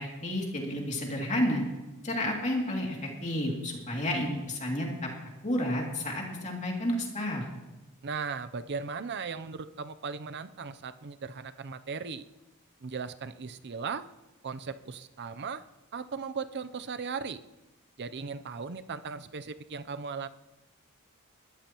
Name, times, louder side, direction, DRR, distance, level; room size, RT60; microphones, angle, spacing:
voice 1, 0.0-1.6 2.0-5.1 5.4-7.4, left 1 dB, 35° left, -1 dB, 2.6 m, -31 dB
voice 2, 8.0-12.3 12.8-14.1 14.4-15.6 15.9-17.4 18.0-20.3, right 5 dB, 50° right, 12 dB, 0.6 m, -37 dB
21.5 x 13.0 x 3.0 m, 1.0 s
head